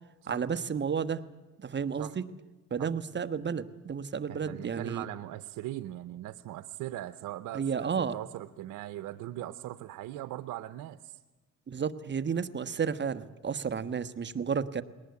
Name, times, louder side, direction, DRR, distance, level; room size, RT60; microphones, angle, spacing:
voice 1, 0.3-1.2 1.6-2.2 2.7-5.0 7.5-8.2 11.7-14.8, right 6 dB, 35° right, 12 dB, 1.2 m, -32 dB
voice 2, 4.3-11.2, right 14 dB, 90° right, 13 dB, 0.8 m, -40 dB
20.5 x 18.5 x 9.5 m, 1.2 s
cardioid pair, 90°, 30 cm